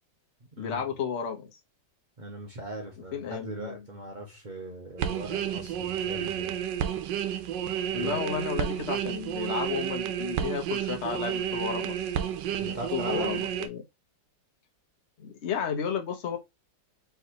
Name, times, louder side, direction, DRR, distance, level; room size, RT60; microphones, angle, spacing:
voice 1, 0.6-1.5 3.1-3.9 7.9-12.1 12.7-13.8 15.2-16.4, left 7 dB, 45° left, 1.1 m, -33 dB
voice 2, 2.2-6.6 7.9-8.2 12.6-13.3, right 1 dB, 45° right, 0.6 m, -39 dB
sound 1, 5.0-13.7, right 9 dB, 80° right, 1.3 m, -31 dB
4.6 x 3.5 x 2.8 m
omnidirectional pair, 2.0 m